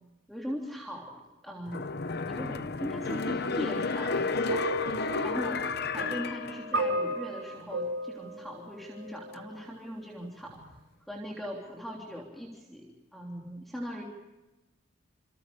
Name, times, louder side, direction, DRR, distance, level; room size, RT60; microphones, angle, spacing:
voice 1, 0.3-1.9 2.3-4.6 5.2-5.7 5.9-10.6 11.1-14.0, equal, ahead, -2 dB, 3.4 m, -39 dB
sound 1, 1.7-7.2 7.6-7.7, left 4 dB, 50° left, 0.8 m, -32 dB
sound 2, 4.5-9.6 10.5-10.7, right 1 dB, 70° right, 7.4 m, -35 dB
28.0 x 28.0 x 5.0 m, 1.1 s
head